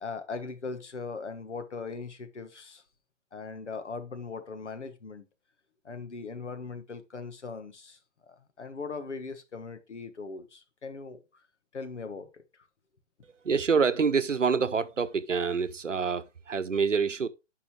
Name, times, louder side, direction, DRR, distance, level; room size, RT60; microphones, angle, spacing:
voice 1, 0.0-2.8 3.3-5.2 5.8-8.0 8.3-11.2 11.7-12.4, left 4 dB, 70° left, 1.5 m, -39 dB
voice 2, 13.4-17.3, right 5 dB, 85° right, 0.8 m, -26 dB
10.0 x 5.6 x 3.2 m
figure-of-eight pair, 130°, 37 cm